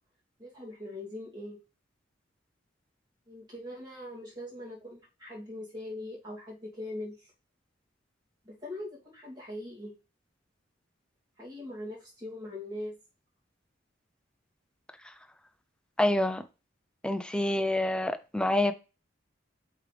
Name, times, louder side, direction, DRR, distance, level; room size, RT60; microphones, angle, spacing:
voice 1, 0.4-1.6 3.3-7.3 8.4-9.9 11.4-13.0, left 1 dB, 25° right, 2.6 m, -41 dB
voice 2, 16.0-16.4 17.0-18.7, left 1 dB, 5° left, 0.4 m, -27 dB
7.9 x 3.8 x 3.3 m
head